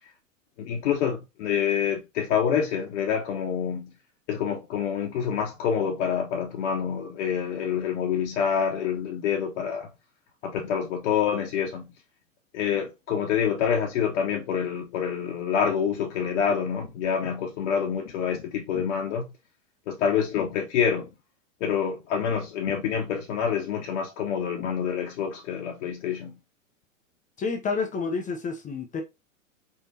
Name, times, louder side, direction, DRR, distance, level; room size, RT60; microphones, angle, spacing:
voice 1, 0.6-3.9 4.3-9.9 10.4-11.9 12.5-19.2 19.9-21.1 21.6-26.4, left 7 dB, 55° left, 1.0 m, -27 dB
voice 2, 27.4-29.0, left 4 dB, 20° left, 0.7 m, -29 dB
4.5 x 3.4 x 2.7 m
hypercardioid pair, 110°, 40 cm